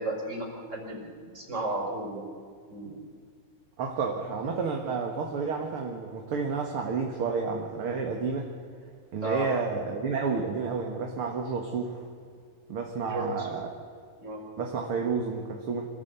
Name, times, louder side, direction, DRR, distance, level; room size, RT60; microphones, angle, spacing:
voice 1, 0.0-2.2 2.7-3.0 9.2-9.5 13.1-13.5 14.2-14.4, right 1 dB, 20° right, 0 dB, 4.9 m, -33 dB
voice 2, 3.8-8.5 9.1-12.0 12.7-13.7 14.6-15.9, right 5 dB, 50° right, 2 dB, 2.1 m, -30 dB
25.5 x 16.0 x 8.1 m, 2.1 s
omnidirectional pair, 3.8 m